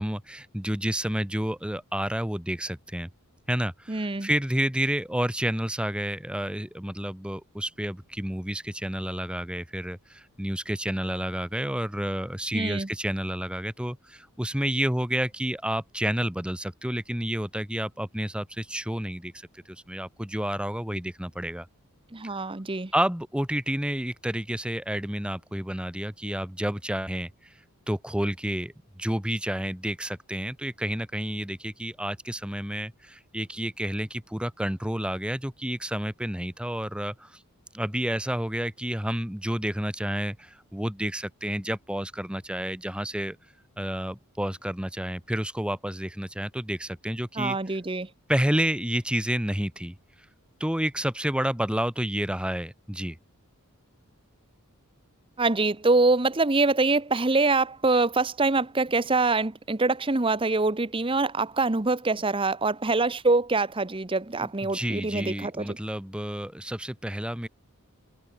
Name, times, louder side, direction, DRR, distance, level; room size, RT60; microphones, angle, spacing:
voice 1, 0.0-3.1 3.5-21.7 22.9-27.6 27.9-37.4 37.7-43.4 43.8-47.6 48.3-50.0 50.6-53.2 64.4-67.5, right 1 dB, 5° right, 1.1 m, -30 dB
voice 2, 3.9-4.3 12.5-12.9 22.1-22.9 47.4-48.1 55.4-65.8, right 3 dB, 25° right, 0.9 m, -24 dB
head